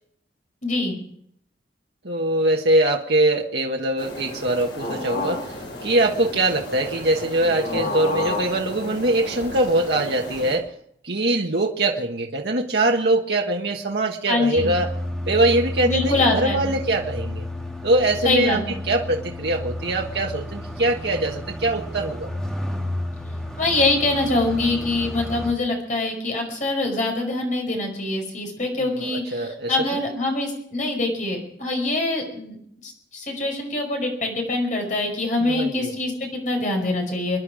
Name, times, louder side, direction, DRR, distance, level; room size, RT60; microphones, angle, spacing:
voice 1, 0.6-0.9 14.3-14.7 15.8-16.6 18.2-18.8 23.6-37.4, left 2 dB, 45° left, 2 dB, 5.3 m, -24 dB
voice 2, 2.0-10.7 11.0-14.9 15.3-17.4 17.8-22.3 28.8-30.0 35.4-35.9, right 2 dB, 65° right, 0 dB, 1.4 m, -23 dB
sound 1, 4.0-10.6, left 2 dB, 75° left, 6.1 m, -32 dB
sound 2, 14.6-25.5, left 1 dB, 5° left, 1.4 m, -31 dB
27.0 x 10.5 x 4.9 m, 0.69 s
head